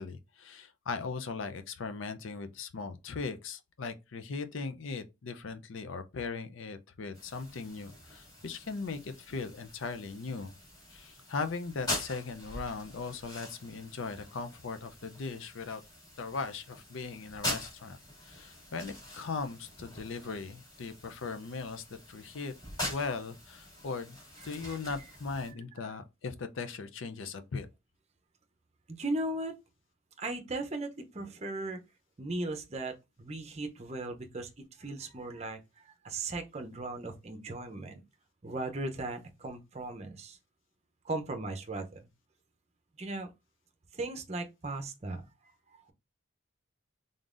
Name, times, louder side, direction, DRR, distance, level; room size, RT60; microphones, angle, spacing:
voice 1, 0.0-10.5 10.9-15.8 16.2-18.0 18.2-22.5 22.9-24.2 24.4-27.7, left 4 dB, 70° left, 0.5 m, -39 dB
sound 1, 7.1-25.5, left 1 dB, 20° left, 2.1 m, -43 dB
voice 2, 28.9-29.6 30.2-31.8 32.2-38.0 38.4-40.4 41.0-42.0 43.0-43.3 43.9-45.9, right 2 dB, 30° right, 0.6 m, -37 dB
3.8 x 3.7 x 2.5 m
head